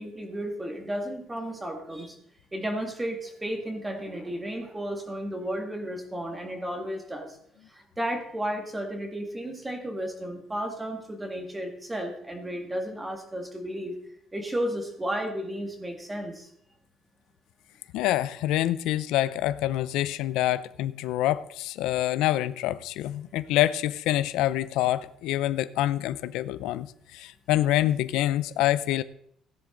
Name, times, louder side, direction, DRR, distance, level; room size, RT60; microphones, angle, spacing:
voice 1, 0.0-2.2 2.5-7.4 7.7-14.0 14.3-16.5, equal, 10° right, 3 dB, 2.0 m, -33 dB
voice 2, 17.9-26.9 27.1-29.0, left 14 dB, 90° left, 15 dB, 0.5 m, -26 dB
16.0 x 10.5 x 3.9 m, 0.69 s
cardioid pair, 165°, 0 cm